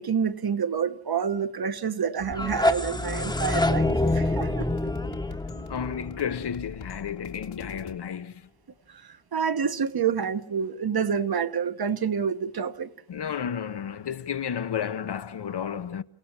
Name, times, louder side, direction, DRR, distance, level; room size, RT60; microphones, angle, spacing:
voice 1, 0.0-4.7 9.3-12.9, right 7 dB, 50° right, 1.2 m, -28 dB
sound 1, 2.2-7.1, left 2 dB, 10° left, 1.0 m, -27 dB
sound 2, 2.3-8.0, left 6 dB, 75° left, 2.2 m, -43 dB
voice 2, 5.7-8.5 13.1-16.0, left 8 dB, 55° left, 0.9 m, -32 dB
30.0 x 18.0 x 6.1 m
wide cardioid pair, 130°, 49 cm